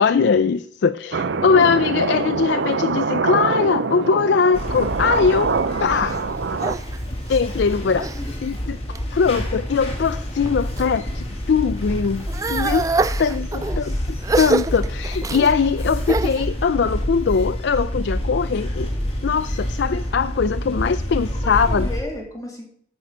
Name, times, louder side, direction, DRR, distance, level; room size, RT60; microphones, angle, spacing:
voice 1, 0.0-5.5 5.8-6.1 7.3-8.1 8.4-8.8 9.1-12.8 13.2-14.0 14.4-18.9 19.2-21.9, left 5 dB, 80° left, 0.4 m, -21 dB
sound 1, 1.1-6.8, right 4 dB, 80° right, 0.6 m, -24 dB
sound 2, 4.5-22.0, equal, 35° left, 2.1 m, -28 dB
sound 3, 5.6-8.2 8.7-9.3 9.9-10.9 11.3-16.5, right 3 dB, 20° right, 0.3 m, -27 dB
voice 2, 5.9-6.2 7.9-8.3 13.3-14.1 21.3-22.7, left 1 dB, 20° left, 2.3 m, -34 dB
9.3 x 5.4 x 7.2 m
head